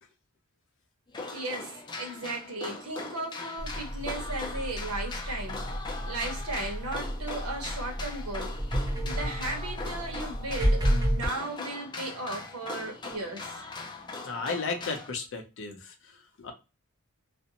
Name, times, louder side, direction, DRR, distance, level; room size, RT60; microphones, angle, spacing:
sound 1, 1.1-15.1, left 3 dB, 20° left, 0.4 m, -40 dB
voice 1, 1.3-5.6 6.0-8.6 9.0-13.6, right 2 dB, 85° right, 0.9 m, -36 dB
sound 2, 3.6-11.3, equal, 20° right, 0.6 m, -31 dB
voice 2, 14.2-15.9 16.4-16.5, left 4 dB, 60° left, 0.6 m, -34 dB
2.5 x 2.1 x 2.7 m
head